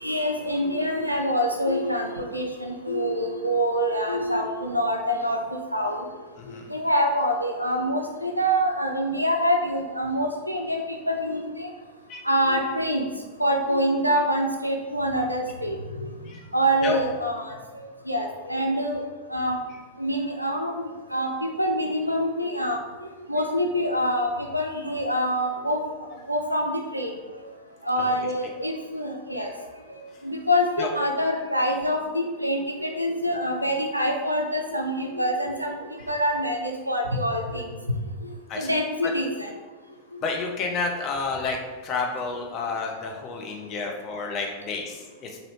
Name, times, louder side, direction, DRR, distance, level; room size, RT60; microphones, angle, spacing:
voice 1, 0.0-5.4 5.7-6.0 6.5-11.7 12.2-13.1 13.4-16.1 16.5-19.0 19.3-19.6 20.0-22.8 23.3-25.8 26.3-27.4 27.9-29.5 29.9-35.7 36.1-37.7 38.6-39.5 40.1-40.2 43.8-43.9, equal, 90° right, 2 dB, 0.3 m, -26 dB
voice 2, 6.4-6.7 12.1-12.2 16.3-16.4 16.8-17.0 28.0-28.2 30.8-30.9 38.5-38.7 39.0-39.1 40.2-41.6 41.8-45.4, left 4 dB, 35° left, 1 dB, 0.6 m, -30 dB
3.1 x 2.6 x 3.0 m, 1.3 s
figure-of-eight pair, 90°, 0 cm